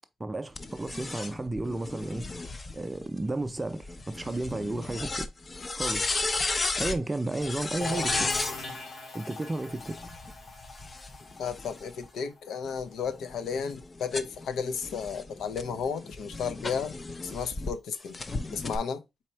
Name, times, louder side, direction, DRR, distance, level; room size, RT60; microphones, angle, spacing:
voice 1, 0.2-2.3 2.7-5.3 5.7-6.2 6.8-8.3 9.1-10.0, right 2 dB, 20° right, 0.4 m, -33 dB
sound 1, 0.6-8.6 9.7-12.1 12.6-17.7 18.1-18.8, left 3 dB, 30° left, 0.5 m, -35 dB
sound 2, 7.8-13.4, left 3 dB, 60° left, 1.5 m, -40 dB
voice 2, 11.4-16.9 17.2-18.2 18.5-19.0, left 6 dB, 90° left, 0.6 m, -33 dB
4.2 x 2.8 x 4.4 m
cardioid pair, 100°, 0 cm